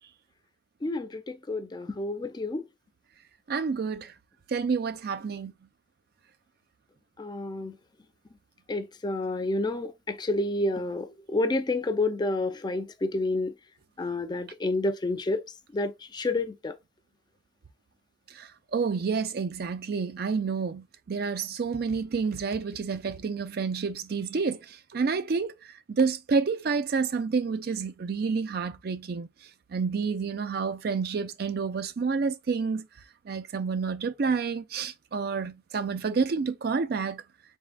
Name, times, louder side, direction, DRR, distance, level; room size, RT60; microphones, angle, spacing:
voice 1, 0.8-2.6 7.2-7.7 8.7-13.5 14.0-15.4 15.7-16.7, left 2 dB, 25° left, 0.4 m, -29 dB
voice 2, 3.5-4.1 4.5-5.5 18.3-25.5 25.9-29.3 29.7-32.9 33.3-37.2, right 5 dB, 55° right, 0.4 m, -29 dB
4.2 x 3.6 x 2.2 m
head